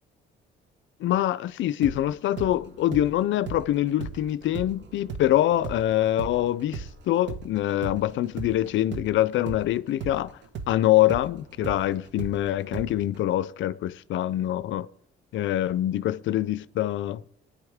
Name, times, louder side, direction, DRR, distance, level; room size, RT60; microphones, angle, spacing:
voice 1, 1.0-10.4 10.7-14.9 15.3-17.2, left 13 dB, 70° left, 0.5 m, -25 dB
sound 1, 1.8-9.7 10.0-13.2, right 5 dB, 65° right, 1.0 m, -38 dB
21.0 x 9.6 x 3.6 m
cardioid pair, 90°, 20 cm